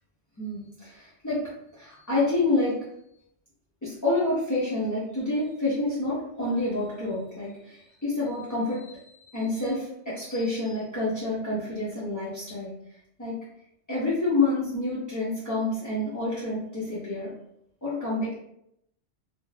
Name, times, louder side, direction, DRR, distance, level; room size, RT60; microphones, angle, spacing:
voice 1, 0.4-1.4 1.7-2.8 3.8-9.0 9.3-12.7 13.2-13.4 13.9-17.3 17.8-18.3, left 2 dB, 25° left, -9 dB, 0.4 m, -28 dB
2.4 x 2.1 x 3.2 m, 0.75 s
omnidirectional pair, 1.2 m